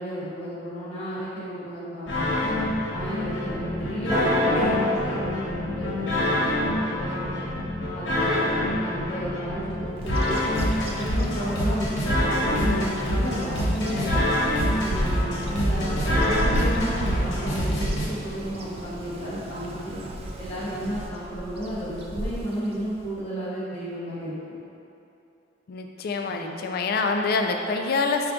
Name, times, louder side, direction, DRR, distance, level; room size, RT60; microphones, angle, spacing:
voice 1, 0.0-2.5 2.9-7.5 7.9-10.4 10.8-14.3 14.8-20.0 20.4-24.3 26.3-26.5, equal, 35° left, -10 dB, 0.7 m, -33 dB
sound 1, 2.1-18.1, left 1 dB, 85° left, 1.0 m, -26 dB
sound 2, 4.1-4.8, equal, 15° left, 1.2 m, -24 dB
Bird vocalization bird call bird song, 10.0-23.2, right 1 dB, 35° right, 0.3 m, -34 dB
voice 2, 25.7-28.3, left 4 dB, 55° left, 4 dB, 0.3 m, -26 dB
4.7 x 2.3 x 3.7 m, 2.8 s
head